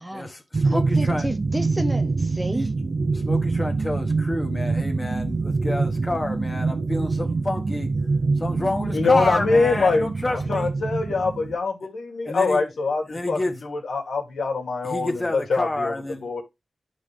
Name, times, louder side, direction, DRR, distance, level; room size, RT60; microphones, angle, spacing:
voice 1, 0.1-1.3 2.5-2.7 3.1-7.9 8.4-10.7 12.2-12.6 13.1-13.6 14.8-16.3, left 2 dB, 20° left, 1.5 m, -29 dB
sound 1, 0.5-11.6, right 3 dB, 45° right, 0.6 m, -25 dB
voice 2, 0.6-2.7, equal, 10° right, 0.7 m, -31 dB
voice 3, 8.9-15.9 16.2-16.4, left 4 dB, 90° left, 1.9 m, -24 dB
10.5 x 3.9 x 3.3 m
wide cardioid pair, 95°, 0 cm